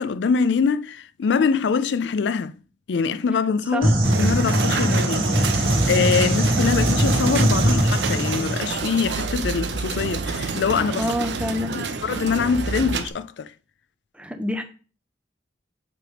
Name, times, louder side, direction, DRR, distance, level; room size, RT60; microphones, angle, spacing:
voice 1, 0.0-2.6 2.9-3.9 4.2-11.1 11.7-13.5, left 5 dB, 80° left, 0.4 m, -24 dB
sound 1, 3.8-8.6, right 1 dB, 55° right, 2.1 m, -21 dB
sound 2, 4.0-13.1, right 4 dB, 85° right, 0.7 m, -28 dB
voice 2, 11.0-11.8 14.1-14.6, left 1 dB, 5° right, 0.8 m, -27 dB
7.7 x 3.4 x 4.9 m
head